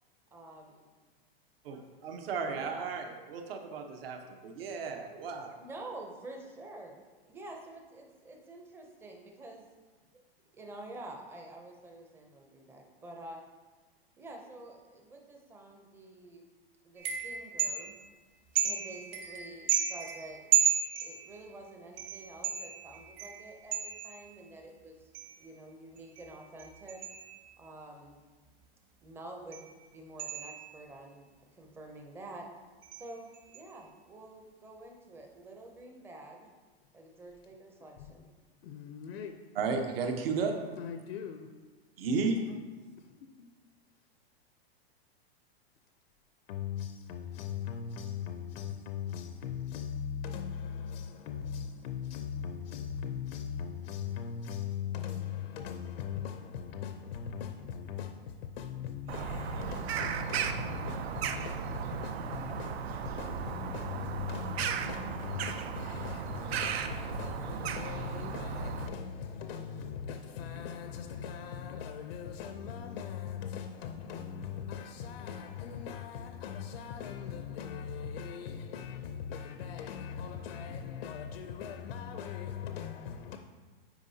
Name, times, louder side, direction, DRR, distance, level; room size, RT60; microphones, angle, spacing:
voice 1, 0.3-0.9 2.3-2.9 5.6-6.9 7.3-9.6 10.5-13.4 14.2-16.4 16.8-17.9 18.6-20.4 21.0-25.1 25.4-27.0 27.6-28.2 29.0-31.3 31.5-32.5 32.9-33.3 33.5-36.5 36.9-38.3, right 2 dB, 10° right, 0.5 m, -48 dB
voice 2, 1.6-5.6 39.6-40.5 42.0-42.4, right 5 dB, 70° right, 1.0 m, -34 dB
sound 1, 17.0-18.1 18.6-21.5 22.0-24.4 25.1-25.5 26.0-27.7 29.5-29.7 30.2-31.0 32.8-33.1 33.3-33.7, right 9 dB, 40° right, 1.0 m, -33 dB
voice 3, 38.6-39.4 40.8-41.5 42.1-42.3 43.0-43.5 46.5-83.4, left 8 dB, 70° left, 0.6 m, -40 dB
Bird vocalization bird call bird song, 59.1-68.9, right 7 dB, 85° right, 0.6 m, -36 dB
8.9 x 4.9 x 2.7 m
supercardioid pair, 155°, 30 cm